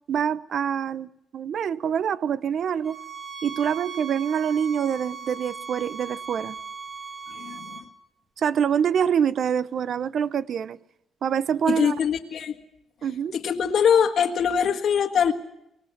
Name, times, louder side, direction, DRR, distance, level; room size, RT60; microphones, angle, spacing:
voice 1, 0.1-3.0 3.4-6.6 8.4-10.8 11.2-12.0 13.0-13.3, right 8 dB, 60° right, 0.8 m, -25 dB
sound 1, 2.8-7.9, right 6 dB, 30° right, 2.6 m, -38 dB
voice 2, 7.3-7.8 11.7-12.5 13.3-15.3, left 7 dB, 60° left, 1.7 m, -22 dB
24.0 x 19.0 x 7.4 m
cardioid pair, 90°, 0 cm